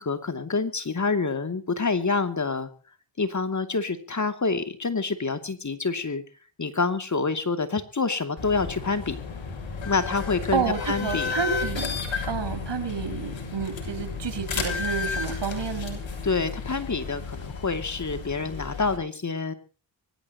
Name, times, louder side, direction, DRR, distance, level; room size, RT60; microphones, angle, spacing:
voice 1, 0.0-2.7 3.2-6.2 6.6-9.2 9.8-11.4 16.2-19.5, left 4 dB, 35° left, 9 dB, 2.7 m, -27 dB
sound 1, 8.4-19.0, left 5 dB, 70° left, 7.2 m, -33 dB
voice 2, 10.5-12.0 12.3-16.0, right 6 dB, 60° right, 8 dB, 5.8 m, -30 dB
24.5 x 14.5 x 3.0 m, 0.37 s
cardioid pair, 70°, 47 cm